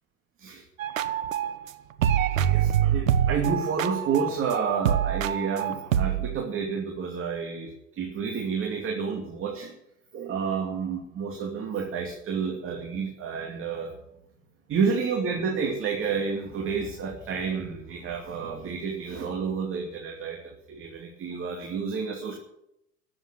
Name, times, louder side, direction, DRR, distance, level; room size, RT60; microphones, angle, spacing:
sound 1, 0.8-1.7 2.0-6.4, right 10 dB, 75° right, 1.0 m, -25 dB
voice 1, 2.4-9.7 10.1-13.9 14.7-22.4, right 5 dB, 30° right, 2 dB, 2.6 m, -30 dB
13.5 x 7.8 x 9.3 m, 0.81 s
figure-of-eight pair, 85°, 40 cm